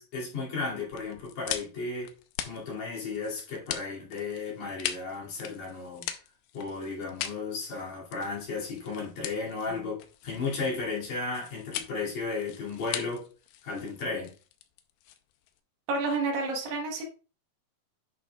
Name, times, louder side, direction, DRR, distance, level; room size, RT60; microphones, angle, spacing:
voice 1, 0.0-2.1 2.4-6.1 6.5-13.3 13.6-14.3, left 4 dB, 55° left, 3.9 m, -34 dB
sound 1, 0.9-15.6, left 11 dB, 80° left, 2.1 m, -40 dB
voice 2, 15.9-17.0, right 3 dB, 75° right, 3.1 m, -30 dB
10.5 x 5.8 x 2.4 m
omnidirectional pair, 4.2 m